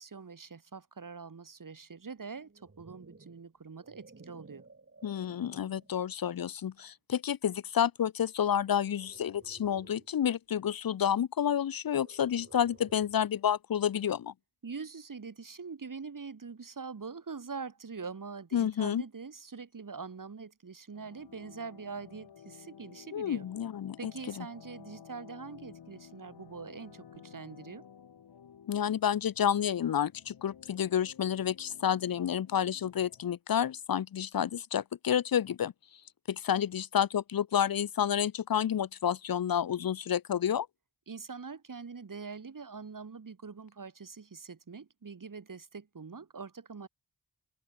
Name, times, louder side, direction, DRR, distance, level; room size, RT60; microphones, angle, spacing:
voice 1, 0.0-4.6 14.6-23.5 24.0-27.9 41.1-46.9, right 5 dB, 55° right, 6.1 m, -44 dB
sound 1, 2.3-6.0 6.6-6.9 8.7-10.2 11.9-13.3, right 3 dB, 35° right, 5.6 m, -57 dB
voice 2, 5.0-14.3 18.5-19.0 23.1-24.1 24.4-24.5 28.7-35.7 36.3-40.7, left 9 dB, 60° left, 0.8 m, -30 dB
sound 2, 20.9-33.3, left 8 dB, 90° left, 4.9 m, -54 dB
open air
cardioid pair, 65°, 39 cm